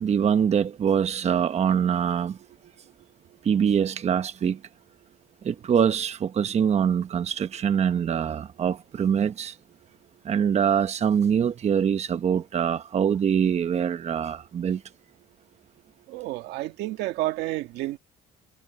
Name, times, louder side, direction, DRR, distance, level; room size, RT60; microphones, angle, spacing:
voice 1, 0.0-2.4 3.4-4.6 5.4-9.5 10.2-14.8, right 8 dB, 40° right, 1.0 m, -24 dB
voice 2, 16.1-18.0, right 16 dB, 90° right, 1.8 m, -30 dB
cardioid pair, 110°, 17 cm